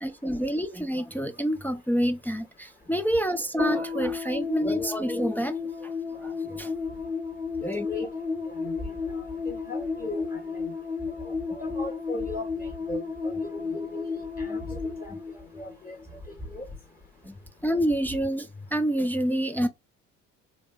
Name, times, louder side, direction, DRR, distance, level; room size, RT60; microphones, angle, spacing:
voice 1, 0.0-5.5 5.8-6.7 7.6-7.9 11.1-11.4 14.5-14.8 17.2-17.3 17.6-19.7, equal, 5° left, 0.4 m, -28 dB
sound 1, 3.6-16.1, left 5 dB, 75° left, 1.8 m, -33 dB
voice 2, 9.1-10.7 11.5-14.6 15.0-15.1 15.6-16.0 16.3-16.7, left 2 dB, 20° left, 1.3 m, -38 dB
3.3 x 2.5 x 2.3 m
hypercardioid pair, 55°, 39 cm